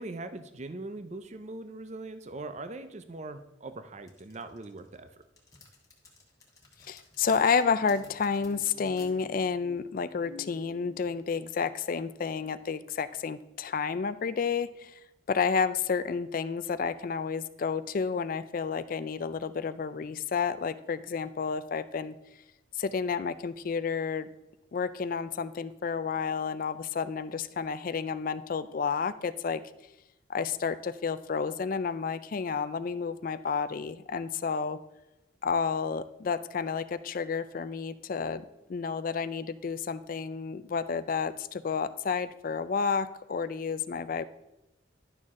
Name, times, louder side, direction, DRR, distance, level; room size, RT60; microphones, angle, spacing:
voice 1, 0.0-5.1, right 2 dB, 35° right, 10 dB, 0.5 m, -41 dB
sound 1, 4.1-9.1, left 4 dB, 20° left, 1.6 m, -56 dB
voice 2, 6.9-15.0 15.3-22.1 22.8-24.3 24.7-29.6 30.3-34.8 35.4-38.4 38.7-44.2, left 5 dB, 45° left, 14 dB, 0.4 m, -30 dB
11.0 x 6.5 x 3.6 m, 0.92 s
head